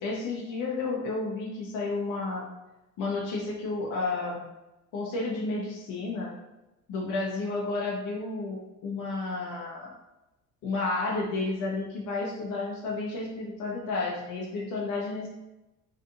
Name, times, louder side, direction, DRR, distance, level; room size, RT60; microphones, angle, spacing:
voice 1, 0.0-2.4 3.0-4.5 4.9-6.3 6.9-9.9 10.6-15.3, left 3 dB, 60° left, -3 dB, 0.7 m, -31 dB
2.7 x 2.4 x 2.5 m, 0.99 s
supercardioid pair, 65°, 37 cm